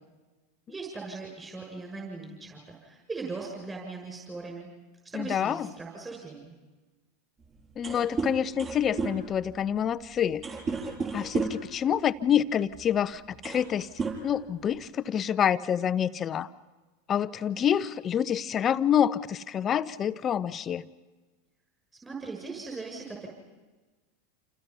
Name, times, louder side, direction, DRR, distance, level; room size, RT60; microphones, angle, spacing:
voice 1, 0.7-4.7 5.0-6.5 22.0-23.3, right 4 dB, 15° right, 0 dB, 6.9 m, -39 dB
voice 2, 5.1-5.7 7.8-10.4 11.1-13.9 14.2-16.5 17.1-20.8, left 9 dB, 35° left, 14 dB, 0.9 m, -27 dB
sound 1, 7.4-7.5 7.7-11.7 12.7-12.9 13.2-13.7 14.0-14.9, right 4 dB, 35° right, 6.7 m, -33 dB
29.0 x 28.5 x 5.7 m, 1.2 s
hypercardioid pair, 90°, 0 cm